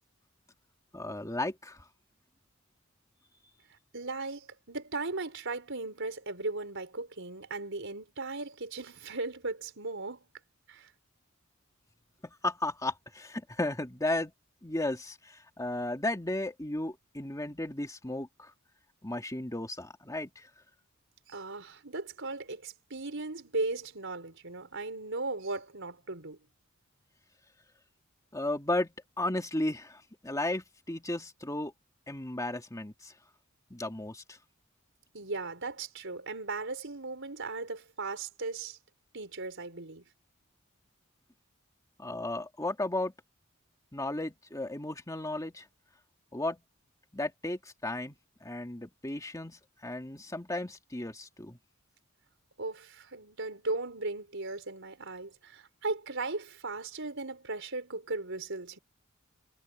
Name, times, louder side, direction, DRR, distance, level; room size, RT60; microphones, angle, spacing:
voice 1, 0.9-1.8 12.2-14.3 14.6-18.5 19.0-20.5 28.3-31.7 32.1-33.1 33.7-34.4 42.0-43.1 43.9-45.7 46.3-46.6 47.1-48.2 48.4-51.6, left 2 dB, 15° left, 2.6 m, -34 dB
voice 2, 3.9-10.3 10.7-10.9 21.3-26.4 35.1-38.8 39.1-40.1 52.6-58.8, right 3 dB, 60° right, 5.0 m, -37 dB
head